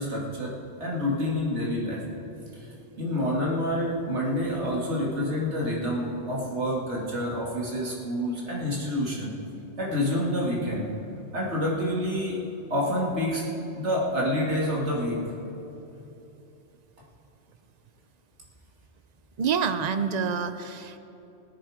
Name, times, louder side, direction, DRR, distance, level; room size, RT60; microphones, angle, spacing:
voice 1, 0.0-2.0 2.5-2.7 3.0-9.3 9.8-10.9 11.3-12.4 12.7-13.5 13.7-15.2, left 1 dB, 80° right, -3 dB, 2.6 m, -28 dB
voice 2, 19.4-21.0, right 6 dB, 45° right, 10 dB, 0.6 m, -27 dB
17.0 x 10.5 x 5.0 m, 3.0 s
omnidirectional pair, 1.2 m